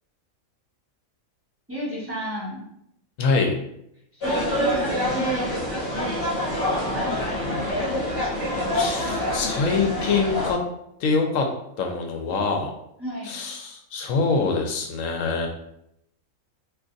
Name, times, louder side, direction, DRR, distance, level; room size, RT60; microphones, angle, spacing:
voice 1, 1.7-2.7 4.1-8.0 13.0-13.4, right 1 dB, 10° right, -8 dB, 1.1 m, -33 dB
voice 2, 3.2-3.5 8.7-10.6 11.0-11.5 11.8-12.7 13.3-15.5, left 4 dB, 70° left, 3 dB, 0.9 m, -24 dB
sound 1, 4.2-10.5, left 1 dB, 50° left, 1.0 m, -26 dB
2.5 x 2.5 x 3.8 m, 0.77 s
omnidirectional pair, 1.4 m